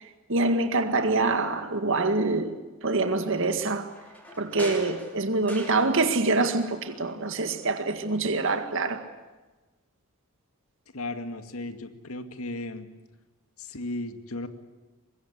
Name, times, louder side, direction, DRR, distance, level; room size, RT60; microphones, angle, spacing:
voice 1, 0.3-2.5 2.8-3.9 4.4-9.0, right 3 dB, 60° right, 2.0 m, -25 dB
sound 1, 3.9-6.3 6.6-7.7 8.0-8.1, equal, 5° left, 6.0 m, -42 dB
voice 2, 10.9-12.9 13.6-14.5, left 2 dB, 75° left, 2.2 m, -35 dB
24.5 x 22.0 x 8.2 m
head